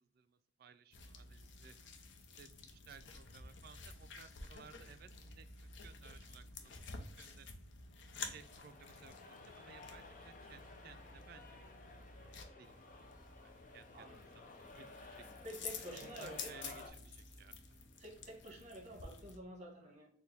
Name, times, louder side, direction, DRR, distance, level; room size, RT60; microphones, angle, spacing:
voice 1, 0.0-1.7 2.4-6.8 7.2-7.5 8.2-11.9 12.1-12.7 13.4-15.2 15.9-17.6, right 6 dB, 55° right, 0.3 m, -59 dB
sound 1, 0.9-19.4, left 4 dB, 90° left, 0.6 m, -51 dB
sound 2, 7.9-16.9, left 3 dB, 45° left, 0.6 m, -55 dB
voice 2, 13.9-14.3 15.4-16.5 18.0-20.1, equal, 40° right, 1.1 m, -50 dB
4.3 x 2.2 x 3.4 m
head